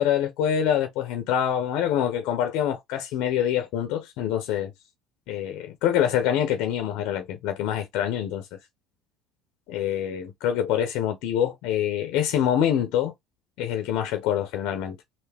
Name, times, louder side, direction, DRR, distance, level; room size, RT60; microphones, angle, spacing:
voice 1, 0.0-4.7 5.3-8.4 9.7-13.1 13.6-15.0, left 10 dB, 75° left, 0.8 m, -25 dB
3.4 x 2.6 x 3.5 m
supercardioid pair, 95°, 0 cm